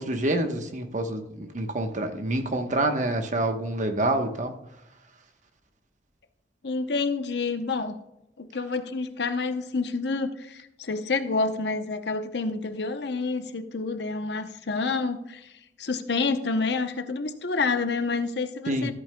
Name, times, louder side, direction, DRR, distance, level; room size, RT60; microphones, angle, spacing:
voice 1, 0.0-4.5 18.7-18.9, right 1 dB, 45° right, 6 dB, 1.1 m, -27 dB
voice 2, 6.6-8.0 8.4-15.5 15.8-18.9, left 4 dB, 70° left, 9 dB, 0.8 m, -28 dB
13.5 x 8.8 x 2.3 m, 0.89 s
head